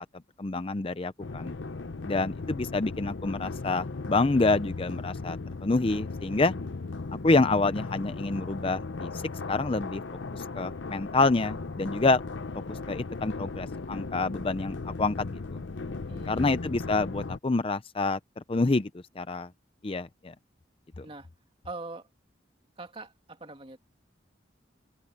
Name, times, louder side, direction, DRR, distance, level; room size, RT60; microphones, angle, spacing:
voice 1, 0.4-1.5 2.0-5.4 5.6-6.5 7.2-9.1 9.5-10.0 10.3-12.2 12.7-15.6 16.3-18.2 18.5-18.9 19.2-19.5 19.8-20.3 21.0-21.1, left 3 dB, 30° left, 0.5 m, -27 dB
sound 1, 1.2-17.4, left 3 dB, 75° left, 0.7 m, -37 dB
voice 2, 16.1-16.6 21.0-21.3 21.6-22.1 22.8-23.8, right 3 dB, 30° right, 2.9 m, -42 dB
open air
head